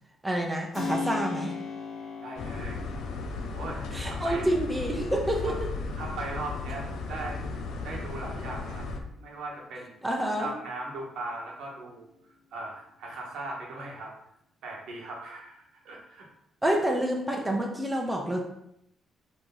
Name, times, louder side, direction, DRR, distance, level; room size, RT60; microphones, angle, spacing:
voice 1, 0.2-1.5 3.9-5.7 10.0-10.5 16.6-18.4, right 1 dB, 10° right, 0 dB, 0.8 m, -28 dB
Keyboard (musical), 0.7-9.3, left 4 dB, 55° left, 1.3 m, -40 dB
voice 2, 2.2-2.8 3.5-3.8 4.1-4.5 5.5-5.6 6.0-7.4 7.8-8.8 9.1-9.9 10.4-12.1 12.5-14.1 14.6-16.3, right 2 dB, 85° right, -2 dB, 1.2 m, -38 dB
sound 1, 2.4-9.0, left 3 dB, 80° left, 0.6 m, -35 dB
4.5 x 3.0 x 3.9 m, 0.78 s
cardioid pair, 90°, 0 cm